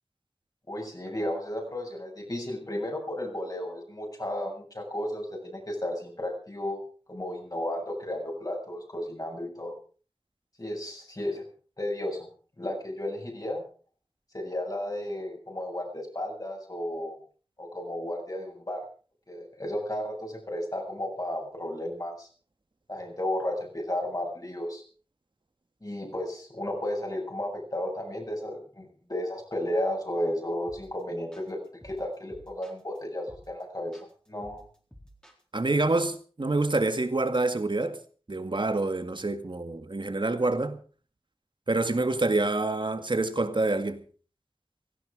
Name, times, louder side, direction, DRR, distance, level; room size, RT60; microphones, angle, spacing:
voice 1, 0.7-6.8 7.1-9.7 10.6-11.4 11.8-12.3 12.6-13.6 14.3-17.2 17.6-18.9 19.3-22.3 22.9-24.8 25.8-34.0 34.3-34.6, left 1 dB, 40° left, 7.2 m, -33 dB
sound 1, 30.7-31.0 31.3-33.0 33.3-33.6 33.9-35.8, equal, 10° left, 4.1 m, -52 dB
voice 2, 35.5-38.0 38.3-40.8 41.7-44.0, right 2 dB, 55° right, 1.9 m, -27 dB
17.0 x 15.5 x 4.9 m
wide cardioid pair, 60°, 10 cm